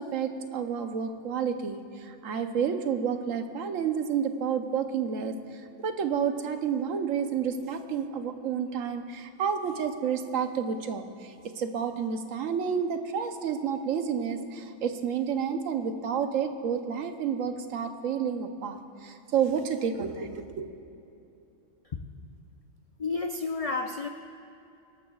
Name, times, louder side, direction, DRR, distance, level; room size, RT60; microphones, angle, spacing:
voice 1, 0.0-20.7, right 7 dB, 85° right, 7 dB, 1.2 m, -30 dB
voice 2, 23.0-24.1, left 4 dB, 70° left, 5 dB, 0.3 m, -31 dB
25.0 x 12.0 x 2.3 m, 2.7 s
omnidirectional pair, 1.3 m